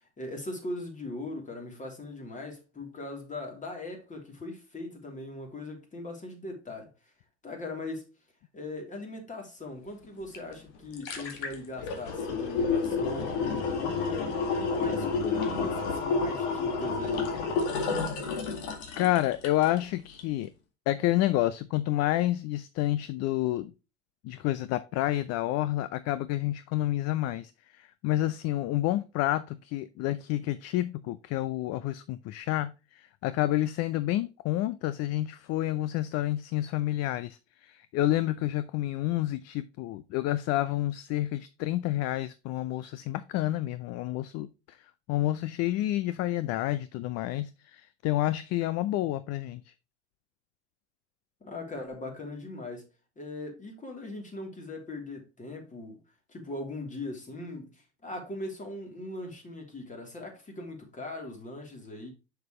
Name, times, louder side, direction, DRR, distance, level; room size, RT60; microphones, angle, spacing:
voice 1, 0.2-6.9 7.4-8.1 8.5-17.3 51.4-52.9 53.2-56.0 56.3-62.1, left 2 dB, 20° left, 3.2 m, -40 dB
sound 1, 10.3-10.4 10.7-19.8 20.2-20.3, left 4 dB, 70° left, 2.1 m, -30 dB
voice 2, 19.0-20.5 20.9-23.7 24.2-49.7, left 15 dB, 50° left, 0.6 m, -29 dB
6.8 x 6.6 x 3.1 m
hypercardioid pair, 85°, 34 cm